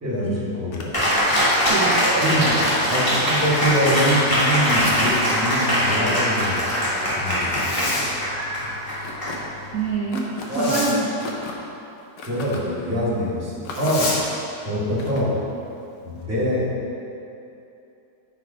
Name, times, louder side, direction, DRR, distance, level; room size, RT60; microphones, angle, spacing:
voice 1, 0.0-0.9 2.2-2.5 2.9-6.6 7.1-7.9 10.5-10.8 12.3-14.1 14.6-15.4 16.0-16.7, equal, 10° right, -8 dB, 1.3 m, -24 dB
sound 1, 0.7-2.9 3.4-4.2 4.8-5.2 5.6-6.0 7.5-7.9 9.0-9.4 10.1-10.7 11.2-11.6 12.2-12.6 13.6-14.2 15.0-15.2, left 3 dB, 80° left, 1.4 m, -36 dB
Cheering, 0.9-9.9, equal, 15° left, 1.4 m, -22 dB
voice 2, 1.7-2.0 2.5-2.6 9.7-11.1, right 4 dB, 65° right, -6 dB, 1.0 m, -26 dB
Zipper (clothing), 4.4-5.5 7.5-8.1 10.4-11.0 13.7-14.2, left 2 dB, 60° left, 1.3 m, -30 dB
9.1 x 3.2 x 4.8 m, 2.8 s
omnidirectional pair, 1.9 m